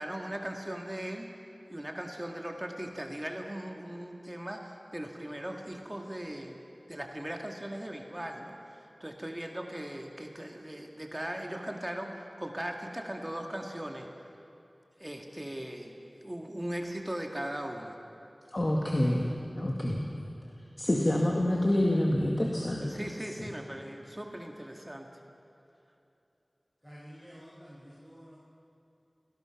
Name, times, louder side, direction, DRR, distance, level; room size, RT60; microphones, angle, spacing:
voice 1, 0.0-1.3 1.7-6.6 6.9-14.1 15.0-18.0 22.8-25.1, right 1 dB, 20° right, 2 dB, 1.9 m, -39 dB
voice 2, 18.5-20.1 20.8-23.0, left 1 dB, 45° left, -1 dB, 2.0 m, -27 dB
voice 3, 26.8-28.4, equal, 5° left, -9 dB, 6.2 m, -50 dB
26.0 x 18.0 x 6.0 m, 2.8 s
wide cardioid pair, 55°, 0 cm